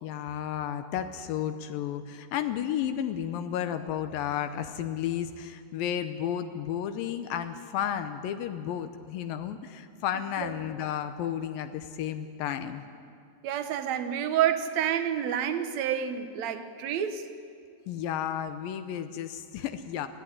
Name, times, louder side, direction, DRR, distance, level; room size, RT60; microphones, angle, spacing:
voice 1, 0.0-12.8 17.9-20.1, left 9 dB, 80° left, 9 dB, 2.5 m, -32 dB
voice 2, 13.4-17.3, right 9 dB, 65° right, 9 dB, 1.9 m, -29 dB
21.5 x 15.0 x 9.9 m, 2.3 s
omnidirectional pair, 4.1 m